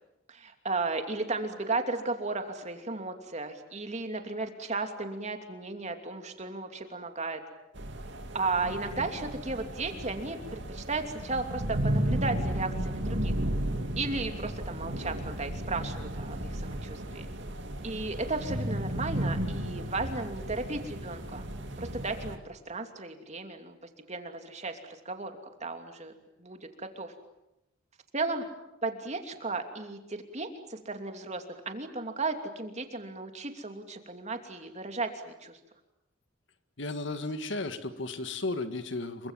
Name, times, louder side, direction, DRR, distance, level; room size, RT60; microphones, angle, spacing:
voice 1, 0.3-7.4 8.3-13.3 14.0-17.3 17.8-21.5 21.8-23.7 24.1-25.3 25.6-26.1 26.4-27.1 28.1-28.5 28.8-35.6, right 3 dB, 35° right, 5 dB, 2.9 m, -35 dB
sound 1, 7.7-22.4, right 1 dB, 65° right, 2.6 m, -34 dB
voice 2, 36.8-39.3, left 2 dB, 65° left, 9 dB, 1.8 m, -34 dB
28.0 x 24.5 x 7.6 m, 0.89 s
head